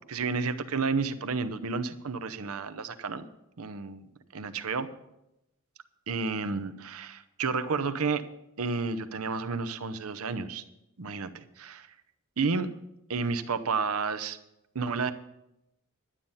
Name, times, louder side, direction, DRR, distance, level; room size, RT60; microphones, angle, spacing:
voice 1, 0.1-3.3 3.6-4.0 4.3-4.9 6.1-8.2 8.6-10.6 11.0-11.9 12.4-12.7 13.1-14.4 14.7-15.1, right 4 dB, 80° right, 10 dB, 0.8 m, -31 dB
11.5 x 8.9 x 5.6 m, 0.87 s
head